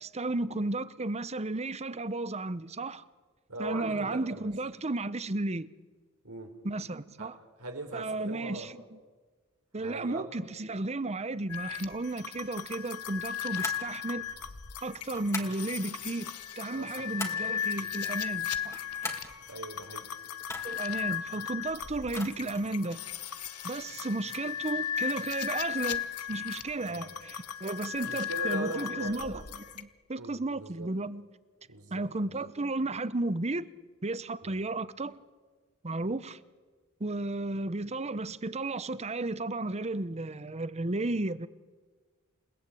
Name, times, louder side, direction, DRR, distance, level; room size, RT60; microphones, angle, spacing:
voice 1, 0.0-3.0 3.6-5.7 6.6-7.3 7.9-8.7 9.7-14.2 14.8-18.8 20.6-23.0 23.6-31.3 31.9-33.7 34.0-35.2 35.8-36.4 37.0-41.5, right 2 dB, 30° right, 0.9 m, -33 dB
voice 2, 3.5-4.5 6.2-6.5 7.2-8.7 9.8-10.3 16.7-17.1 17.8-17.9 19.4-20.1 26.8-27.2 28.1-29.5 30.2-30.9 31.7-32.4 34.4-34.6, right 2 dB, 75° right, 4.2 m, -40 dB
sound 1, 11.5-29.8, left 9 dB, 90° left, 1.2 m, -36 dB
sound 2, 13.5-13.9 15.1-15.6 16.7-17.5 18.6-19.3 20.4-20.9 22.0-22.7, left 2 dB, 15° left, 2.5 m, -40 dB
29.0 x 17.5 x 8.5 m
head